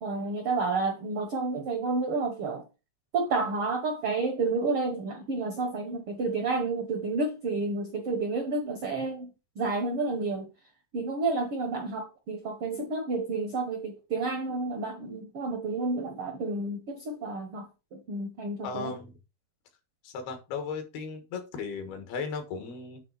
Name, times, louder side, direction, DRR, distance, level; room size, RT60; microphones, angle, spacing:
voice 1, 0.0-2.6 3.1-9.3 9.6-10.5 10.9-17.7 17.9-18.9, right 3 dB, 75° right, 1.2 m, -30 dB
voice 2, 18.6-19.2 20.0-23.0, left 5 dB, 85° left, 3.4 m, -36 dB
9.1 x 3.3 x 5.7 m
omnidirectional pair, 4.3 m